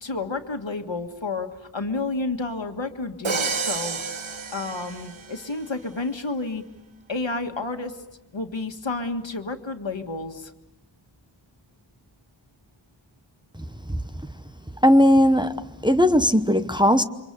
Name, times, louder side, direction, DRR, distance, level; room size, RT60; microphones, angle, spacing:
voice 1, 0.0-4.0 4.5-6.6 7.1-8.0 8.3-10.5, left 3 dB, 65° left, 1.9 m, -30 dB
Crash cymbal, 3.2-5.5, right 5 dB, 80° right, 1.2 m, -30 dB
voice 2, 14.8-17.0, equal, 10° right, 1.0 m, -18 dB
29.0 x 25.0 x 6.9 m
wide cardioid pair, 55°, 47 cm